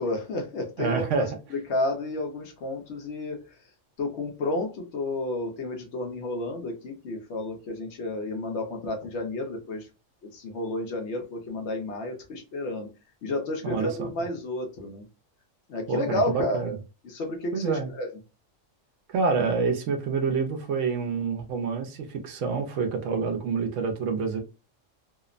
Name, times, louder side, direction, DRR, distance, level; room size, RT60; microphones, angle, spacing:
voice 1, 0.0-3.4 4.0-9.9 10.3-12.9 13.2-15.1 15.7-16.8 17.0-18.1, left 2 dB, 65° left, 0.9 m, -31 dB
voice 2, 0.8-1.3 13.6-14.1 15.9-16.7 17.5-17.9 19.1-24.4, right 5 dB, 75° right, 0.9 m, -27 dB
2.7 x 2.0 x 2.4 m
omnidirectional pair, 1.3 m